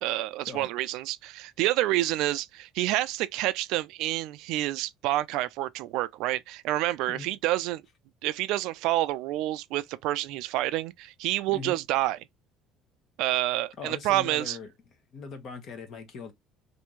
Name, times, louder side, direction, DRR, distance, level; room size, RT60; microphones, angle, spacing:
voice 1, 0.0-7.8 8.2-12.2 13.2-14.6, right 16 dB, 75° right, 0.4 m, -28 dB
voice 2, 13.8-14.7 15.1-16.3, left 4 dB, 45° left, 0.9 m, -40 dB
3.3 x 2.7 x 3.0 m
cardioid pair, 140°, 0 cm